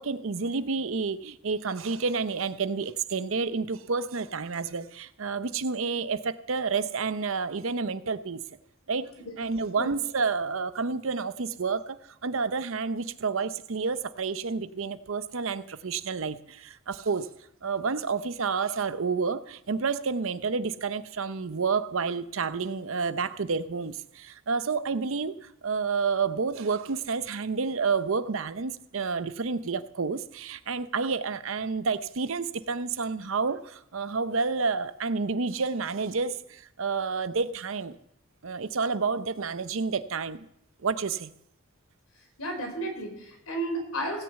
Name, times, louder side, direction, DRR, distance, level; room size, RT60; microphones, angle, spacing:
voice 1, 0.0-8.4 8.9-9.1 9.4-12.0 12.2-17.3 17.6-38.0 38.4-40.5 40.8-41.3, right 4 dB, 70° right, 13 dB, 0.7 m, -29 dB
voice 2, 42.4-44.2, right 1 dB, 90° left, 2 dB, 4.4 m, -33 dB
17.0 x 6.4 x 8.1 m, 0.75 s
head